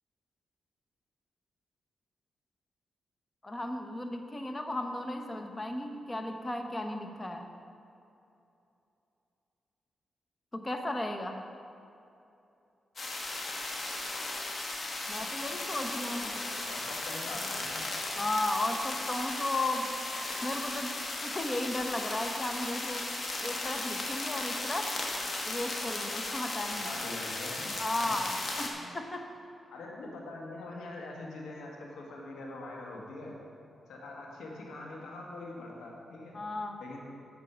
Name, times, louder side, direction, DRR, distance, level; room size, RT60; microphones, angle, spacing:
voice 1, 3.4-7.5 10.5-11.4 15.1-16.3 18.2-19.9 20.4-20.9 21.2-24.9 25.4-26.9 27.8-29.3 36.3-36.8, left 1 dB, 30° left, 5 dB, 1.1 m, -35 dB
sound 1, 13.0-28.7, left 2 dB, 50° left, 1.5 m, -36 dB
voice 2, 16.1-17.8 26.8-27.7 28.1-28.2 28.7-28.9 29.7-33.4 33.9-36.4 36.8-37.0, left 2 dB, 85° left, -1 dB, 1.6 m, -43 dB
8.1 x 7.0 x 6.0 m, 2.8 s
supercardioid pair, 50°, 0 cm